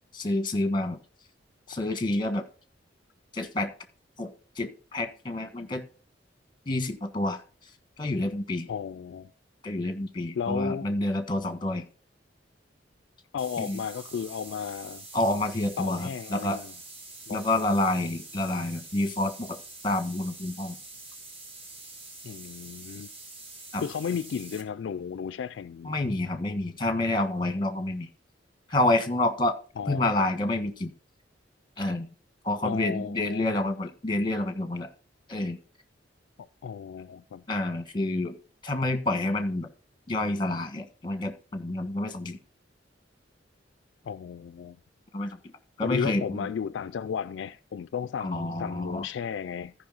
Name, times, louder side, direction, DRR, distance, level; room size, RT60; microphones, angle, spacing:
voice 1, 0.1-1.0 1.7-2.4 3.3-3.7 4.2-4.3 4.6-5.8 6.7-7.4 8.0-8.7 9.6-11.8 13.6-13.8 15.1-16.6 17.3-19.6 19.8-20.8 23.7-23.8 25.8-28.1 28.7-29.6 29.9-30.9 31.8-32.1 32.4-34.9 35.3-35.6 37.5-38.3 38.6-39.7 40.1-42.4 45.1-45.5 45.8-46.5 48.2-49.1, left 2 dB, 25° left, 1.3 m, -28 dB
voice 2, 8.7-9.3 10.4-10.9 13.3-15.0 15.8-16.7 17.3-17.4 22.2-23.1 23.8-25.9 29.8-30.1 32.6-33.6 36.4-37.4 44.0-44.8 45.8-49.7, left 7 dB, 75° left, 0.3 m, -34 dB
sound 1, 13.4-24.6, right 2 dB, 30° right, 1.5 m, -45 dB
14.5 x 5.3 x 3.9 m
head